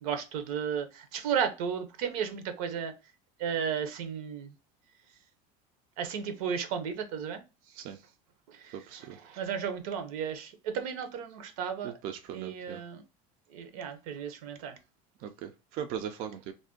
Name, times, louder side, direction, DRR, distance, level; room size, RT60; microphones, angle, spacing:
voice 1, 0.0-2.9 3.4-4.5 6.0-7.4 8.6-11.9 12.3-13.0 13.5-14.8, right 7 dB, 75° right, 8 dB, 0.7 m, -34 dB
voice 2, 8.9-9.2 11.8-12.8 15.2-16.5, right 9 dB, 50° right, 6 dB, 0.4 m, -39 dB
2.5 x 2.1 x 3.6 m, 0.29 s
supercardioid pair, 130°, 18 cm